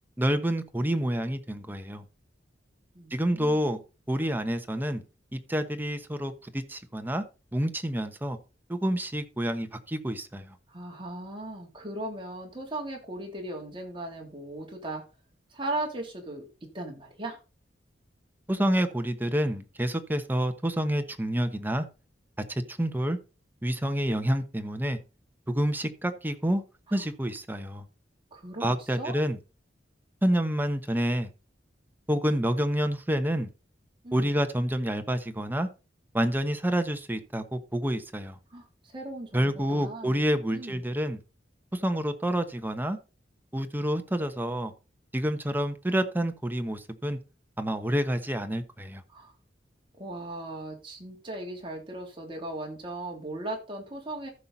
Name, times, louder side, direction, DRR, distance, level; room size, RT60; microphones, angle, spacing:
voice 1, 0.2-2.0 3.1-3.8 4.1-5.0 5.3-7.2 7.5-8.4 8.7-10.5 18.5-21.9 22.5-23.2 23.6-25.0 25.5-26.6 26.9-27.8 28.6-29.4 30.2-31.3 32.1-33.5 34.1-35.7 36.1-38.4 39.3-41.2 41.7-43.0 43.5-44.7 45.1-47.2 47.6-49.0, equal, 10° right, 1.0 m, -28 dB
voice 2, 2.9-3.6 10.7-15.0 15.5-16.5 16.7-17.4 26.9-27.0 28.3-29.2 34.0-34.4 38.5-40.8 49.1-49.3 49.9-54.3, right 2 dB, 30° right, 3.0 m, -38 dB
14.0 x 5.8 x 4.1 m
head